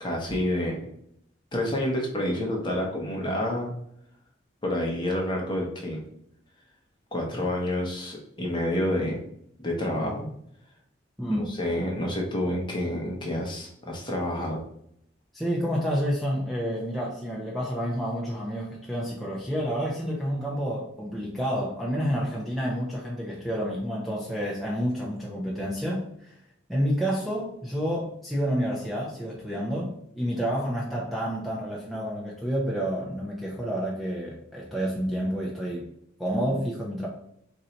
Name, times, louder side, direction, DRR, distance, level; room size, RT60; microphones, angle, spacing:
voice 1, 0.0-0.8 1.5-3.7 4.6-6.0 7.1-9.2 9.6-10.3 11.5-14.6, left 1 dB, 25° left, 0 dB, 0.9 m, -28 dB
voice 2, 11.2-11.5 15.3-26.3 26.7-35.9 36.2-37.1, equal, ahead, -6 dB, 0.6 m, -29 dB
4.0 x 2.7 x 4.4 m, 0.72 s
head